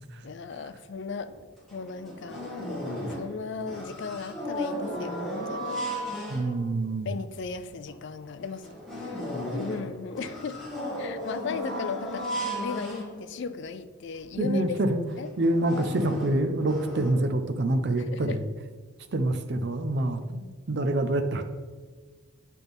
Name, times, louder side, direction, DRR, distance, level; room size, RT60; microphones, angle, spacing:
voice 1, 0.2-1.3 1.7-2.5 3.1-6.2 7.0-8.7 8.9-9.2 9.5-10.6 11.0-14.8 15.2-15.3 18.0-18.4, left 5 dB, 50° left, 12 dB, 0.4 m, -36 dB
sound 1, 1.3-1.4 1.7-3.4 3.6-6.8 7.4-7.5 7.9-8.0 8.4-13.6 14.2-14.3 14.6-14.8 15.3-17.1, equal, ahead, 2.4 m, -35 dB
voice 2, 6.3-7.1 14.4-15.0 15.4-18.4 19.1-21.4, right 1 dB, 50° right, 7 dB, 0.5 m, -26 dB
8.3 x 6.0 x 3.5 m, 1.5 s
head